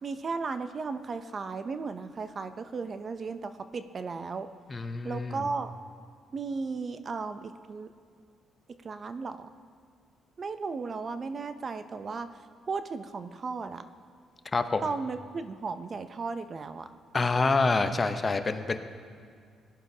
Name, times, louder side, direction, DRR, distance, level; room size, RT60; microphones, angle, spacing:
voice 1, 0.0-4.5 5.0-5.7 6.3-7.9 8.8-9.5 10.4-12.3 12.7-13.9 14.8-16.9, right 4 dB, 40° right, 10 dB, 0.5 m, -35 dB
voice 2, 4.7-5.5 14.5-14.8 17.1-18.8, left 3 dB, 30° left, 9 dB, 0.7 m, -27 dB
18.0 x 11.0 x 2.8 m, 2.2 s
cardioid pair, 90°, 0 cm